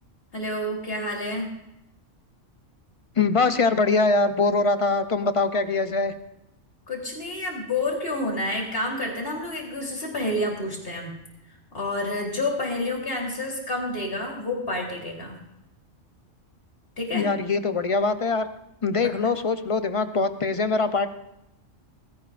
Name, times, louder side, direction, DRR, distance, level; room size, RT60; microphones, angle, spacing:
voice 1, 0.3-1.5 6.9-11.2 11.7-15.4 17.0-17.3 19.0-19.1, left 1 dB, 50° left, -1 dB, 4.0 m, -29 dB
voice 2, 3.2-6.1 17.1-18.4 18.8-21.1, left 3 dB, 30° left, 9 dB, 0.8 m, -23 dB
19.5 x 17.0 x 2.6 m, 0.87 s
omnidirectional pair, 1.3 m